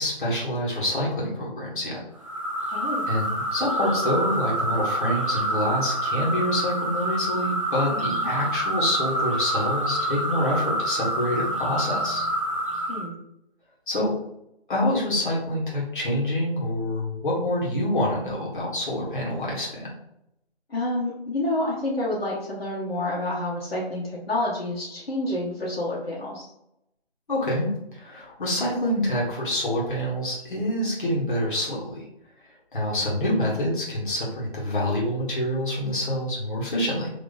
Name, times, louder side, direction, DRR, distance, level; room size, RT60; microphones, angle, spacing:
voice 1, 0.0-2.0 3.1-12.3 13.9-14.1 14.7-19.9 27.3-32.1 32.7-37.1, left 1 dB, 50° left, -4 dB, 1.4 m, -26 dB
sound 1, 2.2-13.1, right 1 dB, 30° right, 0.5 m, -27 dB
voice 2, 2.7-3.1 7.9-8.3 12.9-13.2 20.7-26.5, left 1 dB, 65° left, -6 dB, 1.3 m, -29 dB
2.9 x 2.5 x 3.9 m, 0.81 s
figure-of-eight pair, 160°, 33 cm